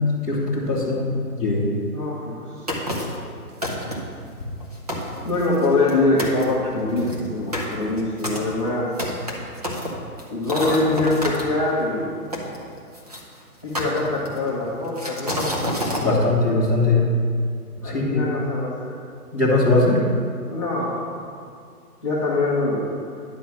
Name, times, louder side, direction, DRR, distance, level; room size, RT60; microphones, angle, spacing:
voice 1, 0.3-1.0 1.3-1.7 16.0-17.1 17.8-18.3 19.3-20.0, left 2 dB, 10° right, -11 dB, 1.2 m, -20 dB
voice 2, 1.9-2.7 5.2-8.9 10.3-12.1 13.6-15.5 17.8-19.0 20.5-21.1 22.0-22.9, left 2 dB, 20° left, -9 dB, 0.8 m, -24 dB
sound 1, 2.7-3.2 3.6-4.2 4.6-4.7 4.9-5.9 6.2-6.4 7.0-11.4 12.3-13.2 13.7-14.5 15.0-16.1, left 1 dB, 25° right, 0.8 m, -28 dB
10.0 x 3.7 x 7.2 m, 2.2 s
hypercardioid pair, 175°, 46 cm